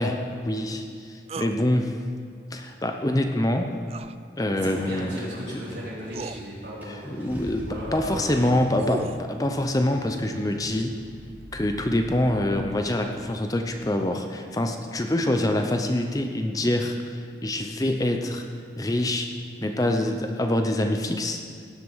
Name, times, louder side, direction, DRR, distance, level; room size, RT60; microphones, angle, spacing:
voice 1, 0.0-2.0 2.5-3.7 4.4-5.1 7.1-11.0 11.5-18.4 18.8-19.3 19.6-21.4, left 1 dB, 20° left, 5 dB, 0.6 m, -25 dB
sound 1, 1.3-1.6 3.9-4.2 5.5-5.6 6.1-6.4 8.4-9.3, right 4 dB, 35° right, 0.3 m, -35 dB
voice 2, 4.6-7.4 7.7-8.9, equal, 80° right, -8 dB, 4.0 m, -36 dB
Car / Engine starting, 6.1-6.2 6.8-13.0, equal, 10° right, 1.4 m, -43 dB
17.0 x 7.8 x 5.6 m, 2.2 s
head